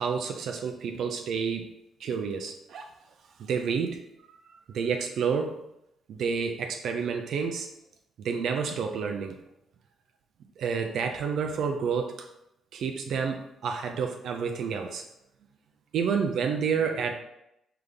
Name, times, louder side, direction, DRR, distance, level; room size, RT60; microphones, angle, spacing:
voice 1, 0.0-1.7 2.0-2.8 3.4-4.0 4.7-5.6 6.1-7.7 8.2-9.4 10.6-12.3 12.7-15.0 15.9-17.1, right 6 dB, 70° right, 4 dB, 0.4 m, -29 dB
3.9 x 3.4 x 3.4 m, 0.83 s
cardioid pair, 90°, 0 cm